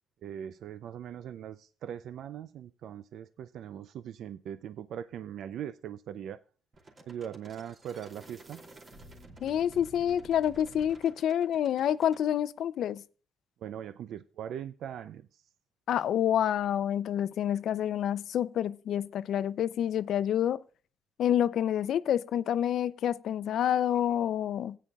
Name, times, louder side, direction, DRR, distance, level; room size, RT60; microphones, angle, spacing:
voice 1, 0.2-6.4 7.1-8.6 13.6-15.4, right 9 dB, 75° right, 0.4 m, -40 dB
sound 1, 6.7-12.2, right 2 dB, 40° right, 2.6 m, -51 dB
voice 2, 9.4-13.0 15.9-20.6 21.2-24.8, left 10 dB, 70° left, 0.4 m, -28 dB
16.0 x 9.2 x 2.3 m
cardioid pair, 90°, 0 cm